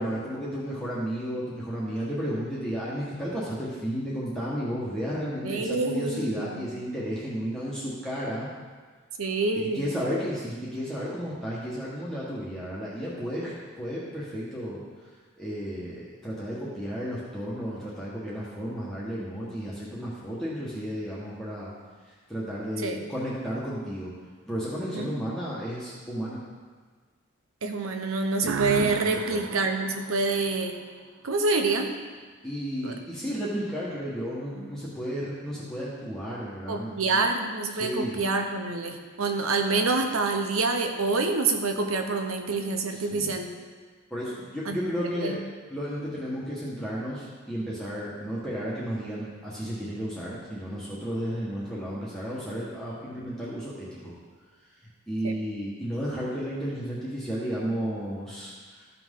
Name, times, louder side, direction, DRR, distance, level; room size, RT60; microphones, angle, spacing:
voice 1, 0.0-8.5 9.5-14.8 15.4-21.7 22.3-24.1 24.5-26.4 29.0-29.4 32.4-37.0 37.7-38.2 42.9-43.3 44.1-45.4 45.7-54.1 55.1-58.9, equal, 5° left, -8 dB, 1.5 m, -33 dB
voice 2, 5.4-6.7 9.2-9.8 22.8-23.0 24.9-25.1 27.6-30.8 31.2-31.9 32.8-32.9 36.7-43.5 44.6-44.8 45.2-45.4 55.2-55.3, right 3 dB, 75° right, 5 dB, 1.0 m, -27 dB
sound 1, 28.4-31.1, right 6 dB, 60° right, 0.3 m, -34 dB
13.5 x 6.0 x 3.8 m, 1.5 s
head